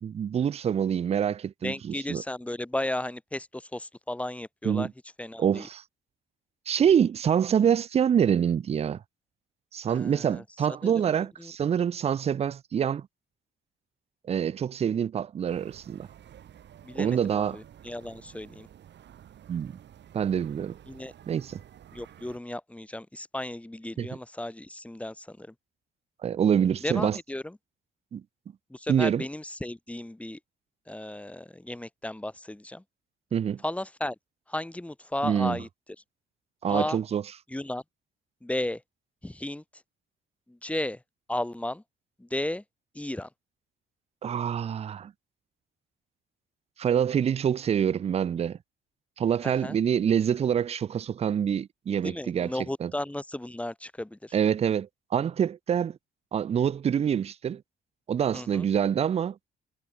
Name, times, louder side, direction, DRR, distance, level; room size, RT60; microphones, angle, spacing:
voice 1, 0.0-2.2 4.6-4.9 5.4-5.8 6.7-9.0 9.7-13.1 14.3-16.1 17.0-17.6 19.5-19.7 20.1-20.8 21.3-21.6 24.0-24.1 26.2-27.2 28.1-28.2 28.9-29.2 33.3-33.6 35.2-35.6 36.6-37.2 44.2-45.1 46.8-48.6 49.2-52.5 52.8-52.9 54.3-56.0 56.3-57.6 58.1-59.4, right 8 dB, 30° right, 0.4 m, -26 dB
voice 2, 1.6-4.9 5.2-5.7 9.9-10.4 10.8-11.5 16.8-18.7 20.9-21.1 21.9-25.5 26.8-27.6 28.7-30.4 30.9-32.8 33.6-34.2 34.5-35.7 36.7-37.0 37.5-37.8 38.4-38.8 39.2-39.6 40.5-41.0 41.3-41.8 42.2-42.6 42.9-43.3 49.4-49.8 52.0-54.3 58.3-58.7, left 1 dB, 5° left, 1.1 m, -34 dB
sound 1, 15.5-22.4, right 10 dB, 65° right, 1.8 m, -51 dB
cardioid pair, 90°, 20 cm